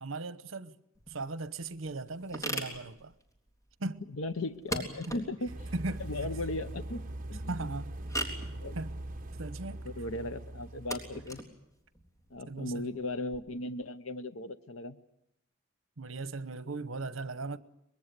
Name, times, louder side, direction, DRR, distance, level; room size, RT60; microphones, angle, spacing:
voice 1, 0.0-0.8 1.1-3.1 3.8-4.0 5.1-5.2 5.7-6.0 7.5-8.0 8.8-8.9 9.4-9.8 12.5-12.9 16.0-17.6, right 3 dB, 75° right, 1.0 m, -37 dB
sound 1, 0.9-13.4, right 1 dB, 15° left, 3.7 m, -42 dB
voice 2, 4.1-5.7 6.0-7.5 8.6-8.8 9.8-11.4 12.3-15.0, left 2 dB, 85° left, 0.8 m, -37 dB
sound 2, 5.5-11.4, right 1 dB, 45° right, 1.2 m, -41 dB
24.5 x 21.5 x 8.2 m
head